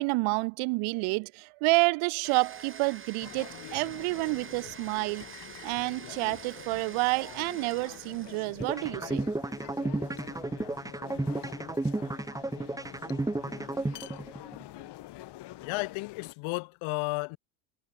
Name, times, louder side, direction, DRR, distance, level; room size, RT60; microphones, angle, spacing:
voice 1, 0.0-5.3 5.6-9.3, right 29 dB, 75° right, 2.6 m, -29 dB
Domestic sounds home sounds, 2.2-8.9, right 6 dB, 25° right, 3.8 m, -47 dB
sound 1, 3.2-16.3, left 16 dB, 55° left, 2.3 m, -46 dB
sound 2, 8.6-14.6, right 2 dB, 5° right, 1.5 m, -32 dB
voice 2, 15.6-17.4, left 26 dB, 70° left, 3.6 m, -33 dB
supercardioid pair, 115°, 50 cm